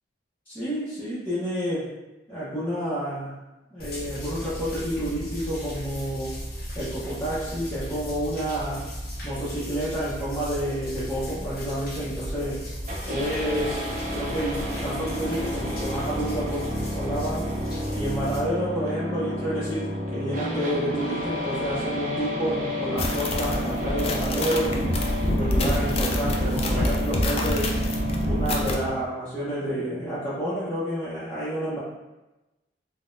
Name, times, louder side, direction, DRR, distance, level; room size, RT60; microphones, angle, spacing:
voice 1, 0.5-1.9 2.3-3.4 3.7-6.3 6.8-8.9 9.2-12.6 13.0-13.8 14.1-17.5 17.9-24.9 25.3-27.7 28.2-31.8, equal, 10° left, -13 dB, 0.7 m, -29 dB
sound 1, 3.8-18.4, equal, 60° left, 0.8 m, -36 dB
sound 2, 12.9-28.9, equal, 50° right, 0.5 m, -31 dB
sound 3, 23.0-28.8, left 1 dB, 35° left, 0.3 m, -26 dB
3.7 x 2.1 x 2.5 m, 1.0 s
head